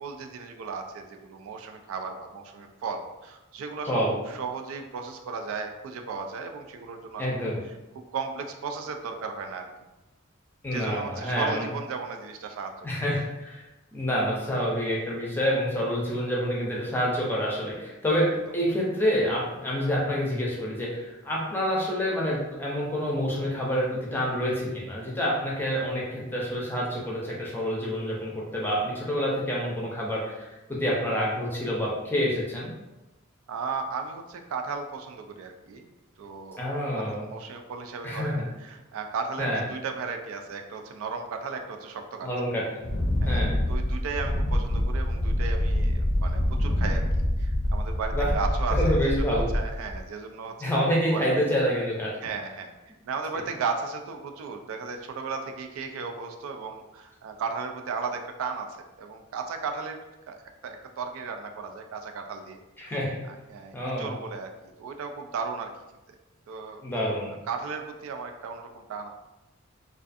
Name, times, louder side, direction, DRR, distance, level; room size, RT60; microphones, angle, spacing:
voice 1, 0.0-4.0 4.3-7.4 8.1-9.7 10.7-12.9 33.5-35.9 36.2-36.6 36.9-42.5 43.2-50.7 51.0-51.2 52.2-52.7 53.1-60.0 60.3-60.4 60.6-62.9 63.3-65.7 66.5-66.8 67.5-69.1, right 5 dB, 80° right, 5 dB, 0.3 m, -35 dB
voice 2, 3.9-4.2 7.2-7.6 10.6-11.7 12.8-13.6 13.9-32.7 36.6-37.3 38.0-38.5 39.4-39.6 42.2-42.8 43.3-43.6 48.1-48.3 48.7-49.5 50.6-52.1 62.8-63.2 63.7-64.2 66.8-67.4, equal, 10° left, -4 dB, 0.5 m, -27 dB
Wind, 42.8-50.0, left 1 dB, 70° left, 0.5 m, -26 dB
2.4 x 2.4 x 2.5 m, 1.0 s
head